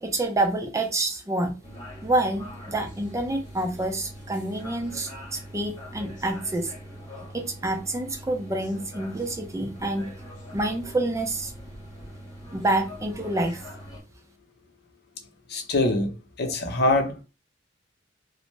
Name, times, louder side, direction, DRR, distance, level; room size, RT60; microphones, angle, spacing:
voice 1, 0.0-1.5 2.0-6.7 7.3-10.1 10.5-11.5 12.5-13.7, right 2 dB, 15° right, 0.5 m, -27 dB
sound 1, 1.6-14.0, equal, 25° left, 1.2 m, -42 dB
voice 2, 15.5-16.1 16.4-17.2, left 2 dB, 60° left, 0.6 m, -23 dB
2.5 x 2.1 x 3.0 m
head